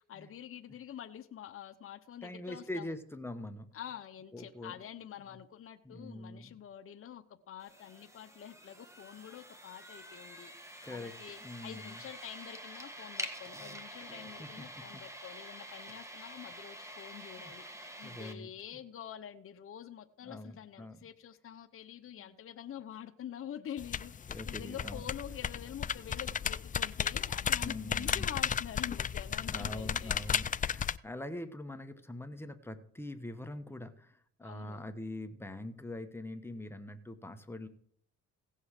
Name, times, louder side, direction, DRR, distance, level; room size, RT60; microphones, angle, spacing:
voice 1, 0.0-2.9 3.7-24.1 24.5-30.1 34.4-34.8, left 10 dB, 45° left, 8 dB, 0.8 m, -47 dB
voice 2, 2.2-3.7 4.3-4.7 5.3-5.4 5.8-6.6 10.8-11.1 11.4-12.0 14.4-15.0 17.4-17.5 18.0-18.8 20.2-21.0 22.2-22.4 24.3-25.0 27.6-28.3 29.5-37.7, left 1 dB, 10° left, 8 dB, 1.2 m, -43 dB
sound 1, 7.6-18.3, right 1 dB, 10° right, 1.7 m, -47 dB
sound 2, 23.8-31.0, left 8 dB, 30° left, 0.4 m, -34 dB
16.5 x 5.5 x 6.6 m, 0.64 s
cardioid pair, 90°, 30 cm